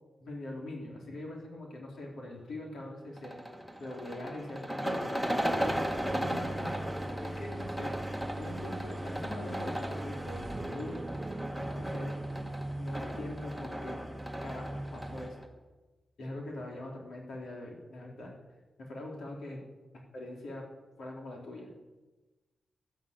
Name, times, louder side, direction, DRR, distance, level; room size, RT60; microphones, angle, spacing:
voice 1, 0.2-3.4 3.8-5.2 6.0-7.9 8.4-11.0 11.8-12.1 12.8-14.0 14.4-15.4 16.2-18.3 18.8-19.6 20.1-20.7 21.0-21.7, left 1 dB, 80° left, -1 dB, 4.0 m, -42 dB
sound 1, 3.2-15.5, equal, 5° left, 1.7 m, -37 dB
sound 2, 5.5-15.3, right 1 dB, 15° right, 0.6 m, -40 dB
12.5 x 11.5 x 8.6 m, 1.2 s
wide cardioid pair, 165°, 0 cm